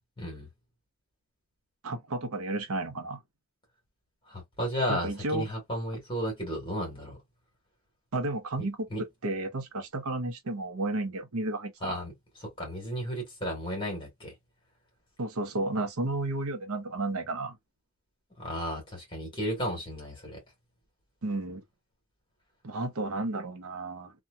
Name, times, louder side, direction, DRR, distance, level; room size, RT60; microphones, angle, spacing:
voice 1, 0.2-0.5 4.3-7.2 8.9-9.0 11.8-12.1 12.4-14.3 18.4-20.4, equal, 25° left, 1.3 m, -33 dB
voice 2, 1.8-3.2 4.9-5.5 8.1-8.9 9.2-12.0 15.2-17.6 21.2-21.6 22.6-24.1, right 2 dB, 80° right, 0.7 m, -32 dB
2.7 x 2.3 x 2.2 m
head